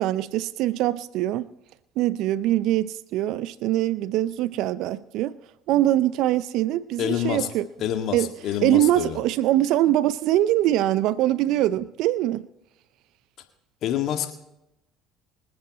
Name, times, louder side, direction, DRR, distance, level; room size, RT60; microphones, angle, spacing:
voice 1, 0.0-1.5 2.0-5.4 5.7-7.7 8.1-8.3 8.6-12.5, right 14 dB, 65° right, 0.4 m, -23 dB
voice 2, 7.0-7.5 7.8-9.2 13.8-14.3, left 10 dB, 60° left, 1.9 m, -27 dB
26.0 x 8.7 x 4.2 m
hypercardioid pair, 65°, 0 cm